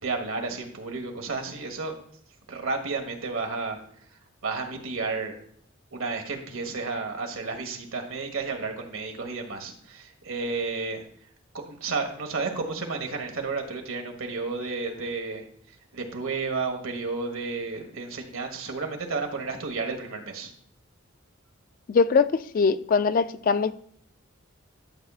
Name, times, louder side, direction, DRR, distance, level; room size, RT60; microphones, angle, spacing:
voice 1, 0.0-1.9 2.5-3.8 4.4-5.4 5.9-11.0 11.5-15.4 15.9-20.5, right 4 dB, 85° right, 1.4 m, -32 dB
voice 2, 21.9-23.7, left 5 dB, 40° left, 0.3 m, -22 dB
11.5 x 6.8 x 2.4 m
head